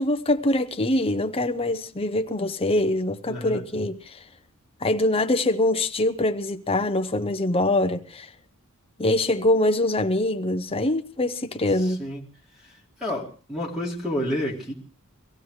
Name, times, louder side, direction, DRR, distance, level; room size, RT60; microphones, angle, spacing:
voice 1, 0.0-4.1 4.8-8.3 9.0-12.0, left 1 dB, 25° left, 0.8 m, -24 dB
voice 2, 3.3-3.6 11.7-12.2 12.6-12.7 13.0-14.7, left 1 dB, ahead, 2.4 m, -30 dB
24.0 x 16.0 x 3.2 m
head